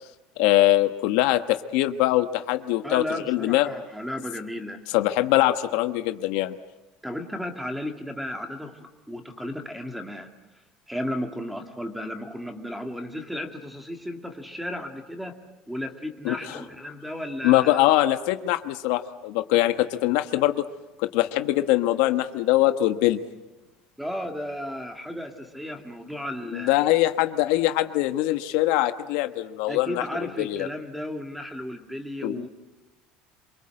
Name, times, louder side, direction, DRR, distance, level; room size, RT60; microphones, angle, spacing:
voice 1, 0.4-3.7 4.9-6.5 16.2-16.6 17.4-20.7 21.0-23.2 26.5-30.7 32.2-32.5, left 15 dB, 75° left, 9 dB, 1.3 m, -23 dB
voice 2, 2.8-4.8 7.0-10.3 10.9-15.4 15.7-17.8 24.0-26.8 29.7-32.5, left 1 dB, ahead, 5 dB, 2.1 m, -34 dB
26.5 x 23.5 x 7.8 m, 1.1 s
cardioid pair, 160°, 2 cm